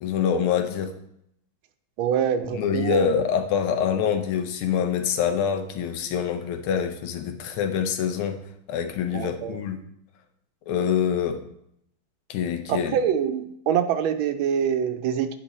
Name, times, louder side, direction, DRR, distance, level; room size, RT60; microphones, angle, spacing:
voice 1, 0.0-0.9 2.5-8.4 8.7-9.8 10.7-11.4 12.3-13.0, left 8 dB, 90° left, 6 dB, 1.7 m, -25 dB
voice 2, 2.0-3.1 9.1-9.5 12.7-15.4, right 8 dB, 75° right, 9 dB, 1.3 m, -25 dB
8.9 x 3.9 x 4.1 m, 0.73 s
omnidirectional pair, 2.3 m